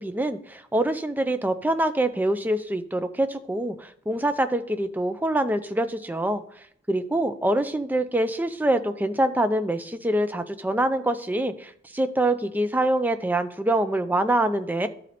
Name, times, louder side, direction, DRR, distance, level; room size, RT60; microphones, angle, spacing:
voice 1, 0.0-6.4 6.9-14.9, right 1 dB, 10° right, 9 dB, 0.4 m, -25 dB
12.0 x 4.1 x 4.2 m, 0.69 s
head